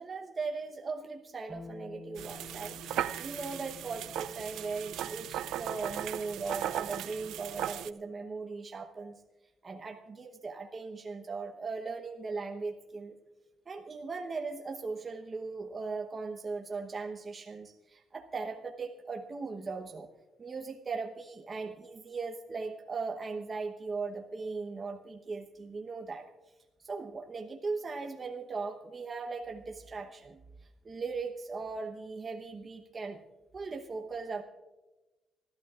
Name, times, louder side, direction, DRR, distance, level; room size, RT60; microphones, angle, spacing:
voice 1, 0.0-2.8 3.2-9.2 9.6-13.2 13.7-20.1 20.4-26.3 26.8-30.4 30.8-33.2 33.5-34.4, right 4 dB, 35° right, 3 dB, 1.0 m, -38 dB
Bass guitar, 1.5-7.7, left 4 dB, 20° left, 3.4 m, -52 dB
sound 1, 2.2-7.9, right 11 dB, 85° right, 0.4 m, -37 dB
26.0 x 12.5 x 2.5 m, 1.1 s
cardioid pair, 90°, 0 cm